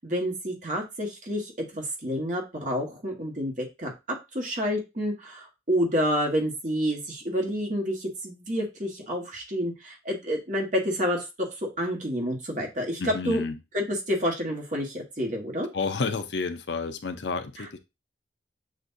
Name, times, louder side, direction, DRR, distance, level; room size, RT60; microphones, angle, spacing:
voice 1, 0.0-3.9 4.3-11.5 11.8-13.4 13.7-15.7 17.6-17.7, equal, 45° right, 1 dB, 1.4 m, -29 dB
voice 2, 13.0-13.6 15.7-17.8, left 4 dB, 75° left, 8 dB, 0.6 m, -30 dB
7.6 x 2.6 x 2.6 m, 0.24 s
head